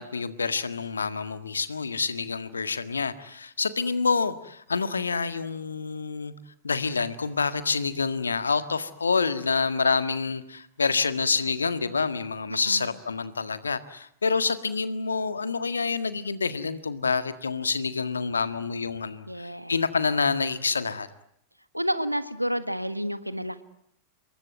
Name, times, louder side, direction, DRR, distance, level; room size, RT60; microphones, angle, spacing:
voice 1, 0.0-6.3 6.6-21.1, left 5 dB, 75° left, 12 dB, 1.7 m, -27 dB
voice 2, 12.5-12.9 19.3-19.7 21.7-23.6, equal, 90° right, 13 dB, 1.5 m, -30 dB
28.0 x 22.0 x 9.3 m, 0.70 s
figure-of-eight pair, 90°, 0 cm